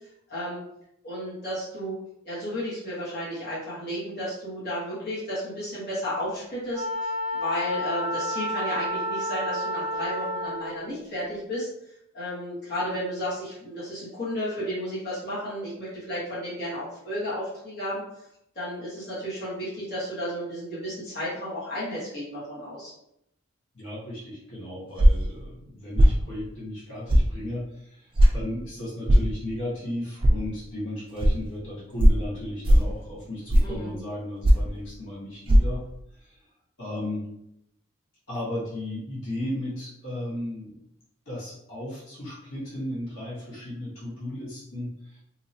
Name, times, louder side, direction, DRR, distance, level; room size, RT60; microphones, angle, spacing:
voice 1, 0.3-0.6 1.0-1.9 2.2-11.7 12.1-18.0 18.5-22.9 33.6-34.0, equal, 50° left, -9 dB, 1.4 m, -33 dB
Wind instrument woodwind instrument, 6.7-10.9, left 1 dB, 20° left, 1.5 m, -30 dB
voice 2, 23.7-35.9 36.1-36.5 36.8-37.2 38.3-40.7 41.2-45.2, left 1 dB, 80° left, -8 dB, 1.4 m, -35 dB
sound 1, 25.0-25.3 26.0-26.2 27.1-27.3 28.2-28.3 29.1-29.3 30.2-30.3 31.2-31.3 32.0-32.2 32.6-32.9 33.5-33.8 34.4-34.7 35.5-35.6, equal, 25° right, 0.3 m, -16 dB
2.8 x 2.7 x 2.7 m, 0.78 s
head